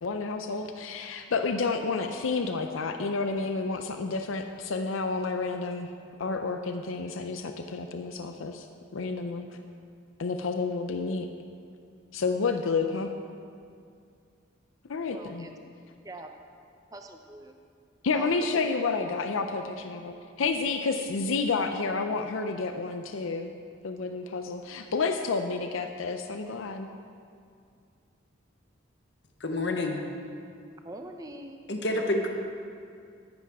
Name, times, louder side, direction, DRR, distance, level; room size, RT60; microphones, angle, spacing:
voice 1, 0.0-5.9 6.2-8.7 8.9-9.5 10.2-11.3 12.1-13.1 14.9-15.5 18.0-23.5 23.8-26.9, left 4 dB, 90° left, 6 dB, 0.6 m, -30 dB
voice 2, 15.1-15.5 16.0-16.3 16.9-17.5 18.1-18.4 30.7-31.6, right 1 dB, 15° right, 4 dB, 0.7 m, -43 dB
voice 3, 29.4-30.0 31.7-32.3, left 1 dB, 60° left, 3 dB, 1.1 m, -28 dB
13.0 x 11.5 x 3.6 m, 2.3 s
head